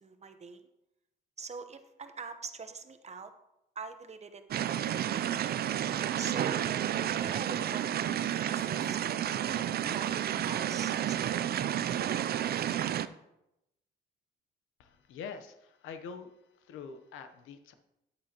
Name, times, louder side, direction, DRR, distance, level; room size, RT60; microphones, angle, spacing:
voice 1, 0.0-0.7 1.4-3.3 3.7-4.4 4.7-5.2 6.2-6.7 7.1-12.2, right 5 dB, 35° right, 8 dB, 1.0 m, -45 dB
sound 1, 4.5-13.1, right 10 dB, 55° right, 0.4 m, -31 dB
voice 2, 14.8-17.7, left 6 dB, 85° left, 8 dB, 0.9 m, -45 dB
9.8 x 8.6 x 3.0 m, 0.87 s
cardioid pair, 90°, 20 cm